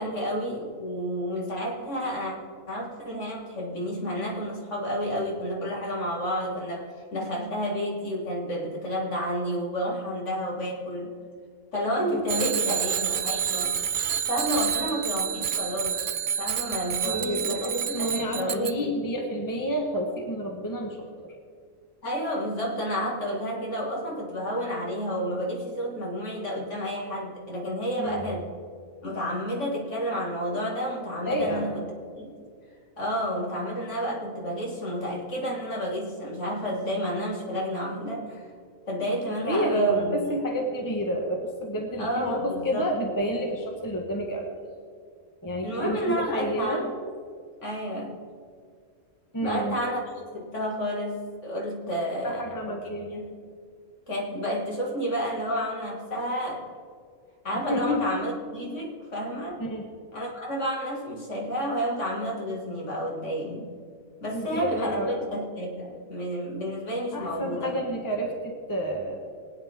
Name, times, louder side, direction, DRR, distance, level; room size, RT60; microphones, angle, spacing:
voice 1, 0.0-2.3 2.7-11.1 11.7-13.7 14.3-16.0 16.4-19.0 22.0-28.5 29.0-31.9 32.2-32.5 33.0-38.4 38.9-40.4 42.0-42.9 45.6-46.9 47.6-48.2 49.4-52.6 53.0-53.2 54.1-56.6 57.4-59.6 60.1-63.7 64.2-67.8, equal, 60° left, -3 dB, 2.5 m, -30 dB
voice 2, 12.1-12.8 17.0-21.0 21.2-21.3 28.0-28.3 31.2-31.7 39.4-44.5 45.4-46.9 49.3-49.8 52.2-53.2 57.5-58.0 59.6-59.9 64.3-65.2 67.1-69.2, right 1 dB, 15° left, 1 dB, 1.3 m, -29 dB
Bicycle bell, 12.3-18.7, right 8 dB, 55° right, 0.6 m, -29 dB
22.0 x 9.0 x 3.7 m, 2.1 s
omnidirectional pair, 1.4 m